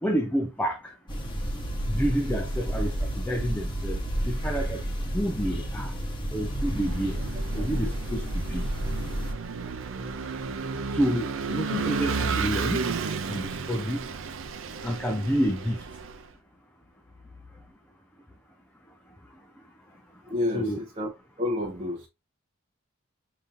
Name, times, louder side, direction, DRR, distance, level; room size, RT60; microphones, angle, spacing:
voice 1, 0.0-1.0 1.9-4.0 4.2-4.9 5.1-5.9 6.3-7.2 7.5-8.6 10.9-12.9 13.2-14.1 14.8-15.8 20.5-20.8, equal, 10° left, 0.4 m, -29 dB
sound 1, 1.1-9.3, equal, 25° left, 0.9 m, -31 dB
Vehicle / Engine, 6.4-16.2, right 5 dB, 65° right, 0.5 m, -33 dB
voice 2, 20.3-21.1 21.4-22.1, left 2 dB, 35° right, 0.9 m, -29 dB
5.3 x 2.8 x 2.5 m
head